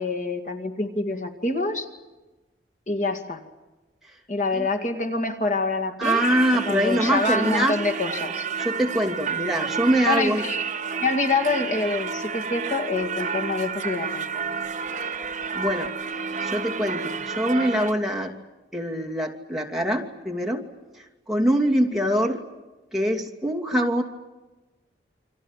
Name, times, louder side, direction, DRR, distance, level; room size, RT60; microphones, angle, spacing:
voice 1, 0.0-1.9 2.9-3.4 4.3-6.2 6.6-8.5 10.1-10.6 11.0-14.6, left 3 dB, 45° left, 5 dB, 2.2 m, -26 dB
voice 2, 6.0-7.7 8.6-10.4 15.5-15.9 16.4-18.3 18.7-20.6 21.3-22.4 22.9-24.0, equal, ahead, 0 dB, 2.7 m, -24 dB
Singing / Church bell, 6.0-17.9, right 6 dB, 40° right, 1.4 m, -30 dB
29.5 x 25.0 x 7.4 m, 1.1 s
head